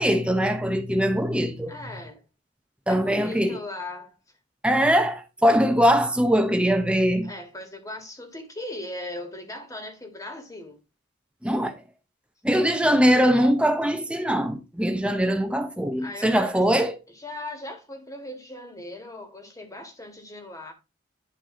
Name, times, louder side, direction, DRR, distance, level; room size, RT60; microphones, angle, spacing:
voice 1, 0.0-1.7 2.9-3.6 4.6-7.3 11.4-11.8 12.4-16.9, equal, 5° right, 0.9 m, -22 dB
voice 2, 1.7-2.2 2.9-4.2 7.2-10.8 16.0-16.7 17.1-20.7, left 1 dB, 15° left, 1.8 m, -38 dB
11.0 x 4.7 x 3.8 m
head